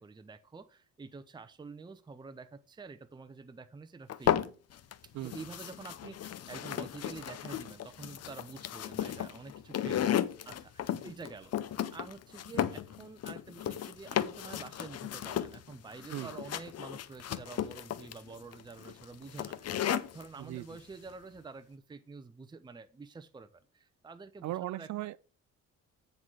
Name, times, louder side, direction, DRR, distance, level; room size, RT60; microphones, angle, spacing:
voice 1, 0.0-4.3 5.2-24.9, right 4 dB, 15° right, 0.6 m, -48 dB
sound 1, 4.1-4.9 5.3-20.3, left 10 dB, 55° left, 0.7 m, -34 dB
voice 2, 20.4-20.8 24.4-25.3, right 15 dB, 70° right, 0.5 m, -38 dB
9.4 x 4.0 x 6.2 m
cardioid pair, 90°, 30 cm